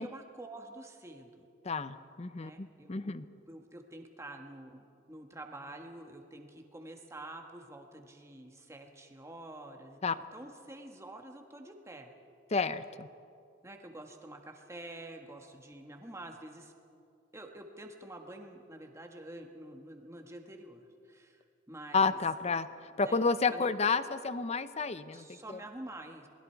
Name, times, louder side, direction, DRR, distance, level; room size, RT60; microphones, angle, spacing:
voice 1, 0.0-1.5 2.4-3.1 3.5-12.1 13.6-16.7 17.3-22.2 23.1-23.2 23.5-23.7 25.1-26.3, right 1 dB, 15° right, 3 dB, 1.6 m, -48 dB
voice 2, 1.6-3.3 10.0-10.1 12.5-13.1 21.9-25.6, left 4 dB, 35° left, 13 dB, 0.6 m, -31 dB
27.5 x 20.5 x 4.7 m, 2.5 s
head